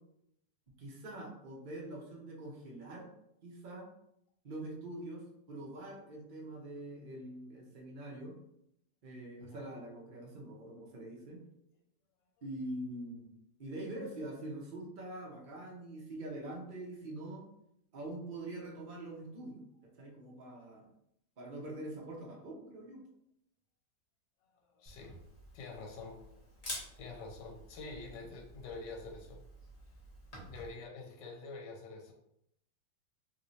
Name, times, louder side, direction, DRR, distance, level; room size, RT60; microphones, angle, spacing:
voice 1, 0.8-3.1 3.4-3.9 4.4-8.4 9.0-11.4 12.4-13.3 13.6-17.4 17.9-19.6 20.0-20.9 21.4-23.0 30.3-30.5, right 1 dB, 55° right, -2 dB, 0.5 m, -44 dB
voice 2, 24.4-25.1 25.5-26.5 27.0-29.4 29.9-30.0 30.5-32.1, left 3 dB, 80° left, 1 dB, 1.3 m, -47 dB
Camera, 24.8-30.7, left 1 dB, 35° left, 0.6 m, -49 dB
3.1 x 3.0 x 2.7 m, 0.75 s
omnidirectional pair, 1.9 m